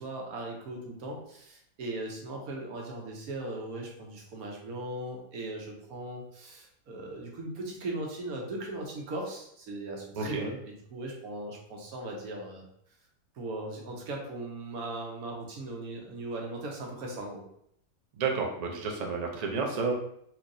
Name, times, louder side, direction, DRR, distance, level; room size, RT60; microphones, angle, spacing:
voice 1, 0.0-12.6 13.3-17.4, right 2 dB, 80° right, 0 dB, 1.3 m, -38 dB
voice 2, 18.2-19.9, right 4 dB, 55° right, 0 dB, 0.4 m, -30 dB
4.4 x 2.7 x 2.6 m, 0.70 s
omnidirectional pair, 1.5 m